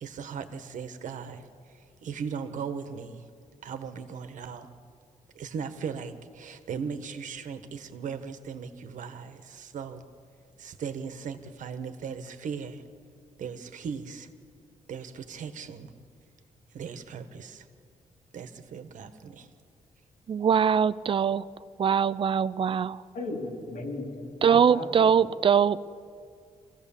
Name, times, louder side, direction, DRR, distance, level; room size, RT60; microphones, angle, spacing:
voice 1, 0.0-3.2 3.6-4.7 5.3-10.0 10.6-12.8 13.4-14.3 14.9-15.9 16.7-17.7 18.3-19.5, right 6 dB, 75° right, 9 dB, 1.4 m, -38 dB
voice 2, 20.3-21.4 21.8-23.0 24.4-25.8, right 7 dB, 40° right, 18 dB, 0.4 m, -22 dB
voice 3, 23.1-25.1, left 2 dB, 90° left, 2 dB, 3.9 m, -36 dB
26.0 x 16.5 x 7.3 m, 2.3 s
wide cardioid pair, 145°, 13 cm